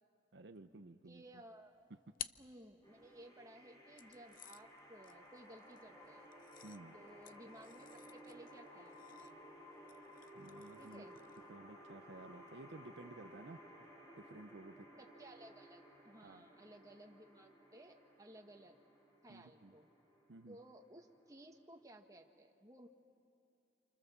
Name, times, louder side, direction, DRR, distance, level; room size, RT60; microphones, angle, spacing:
voice 1, 0.3-1.2 1.9-2.0 6.6-7.0 10.3-11.0 11.5-13.6 14.2-14.9 16.2-16.5 19.3-19.7 20.3-20.6, right 2 dB, 70° right, 8 dB, 0.8 m, -54 dB
voice 2, 1.1-1.9 2.4-6.3 6.9-9.4 10.8-11.2 15.0-18.8 19.2-19.9 20.5-22.9, right 1 dB, 20° right, 2 dB, 1.7 m, -58 dB
sound 1, 1.5-3.3 4.0-11.6, left 12 dB, 50° left, 0.5 m, -55 dB
sound 2, 2.8-21.8, equal, 20° left, 5.1 m, -58 dB
28.5 x 28.0 x 7.1 m, 2.8 s
head